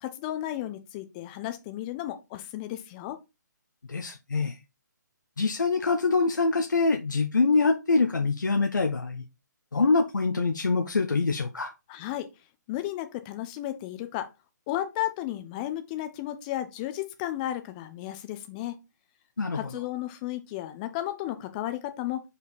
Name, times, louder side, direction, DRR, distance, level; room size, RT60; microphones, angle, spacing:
voice 1, 0.0-3.2 11.9-12.3 12.7-14.3 14.7-18.8 19.5-22.2, left 13 dB, 25° left, 0.9 m, -33 dB
voice 2, 3.9-4.6 5.4-9.2 9.7-11.7 19.4-19.6, left 4 dB, 80° left, 1.1 m, -24 dB
5.2 x 5.1 x 4.2 m
figure-of-eight pair, 140°, 10 cm